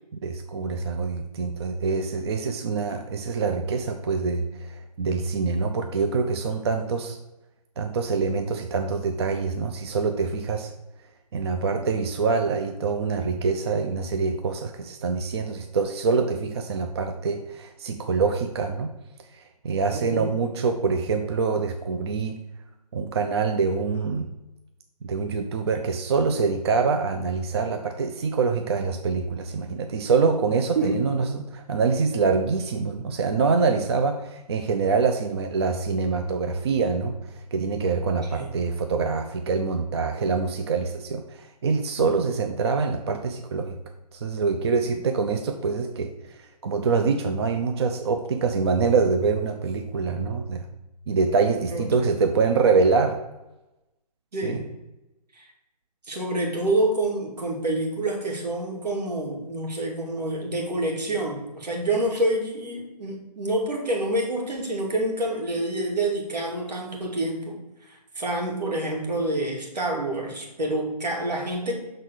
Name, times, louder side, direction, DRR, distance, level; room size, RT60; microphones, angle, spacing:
voice 1, 0.2-7.2 7.8-10.7 11.3-18.9 19.6-22.4 22.9-24.3 25.0-43.8 44.1-46.3 46.6-50.7 51.1-53.2 54.4-54.6, right 4 dB, 40° right, 5 dB, 0.6 m, -25 dB
voice 2, 19.9-20.3 30.8-31.0 38.3-38.5 44.8-45.0 51.7-51.9 54.3-54.7 55.3-55.4 56.0-67.6 67.8-71.8, right 1 dB, 80° right, 0 dB, 2.6 m, -27 dB
6.3 x 4.2 x 6.3 m, 0.97 s
hypercardioid pair, 160°, 21 cm